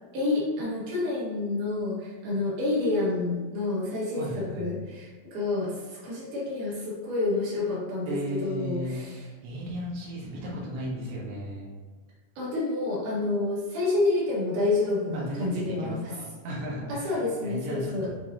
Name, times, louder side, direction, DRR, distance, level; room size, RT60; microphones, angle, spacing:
voice 1, 0.1-9.3 12.4-16.1 16.9-18.1, left 2 dB, 60° right, -6 dB, 2.6 m, -28 dB
voice 2, 4.2-4.7 8.0-11.7 15.1-18.1, equal, 90° right, -4 dB, 1.3 m, -35 dB
6.8 x 2.6 x 2.9 m, 1.4 s
omnidirectional pair, 4.4 m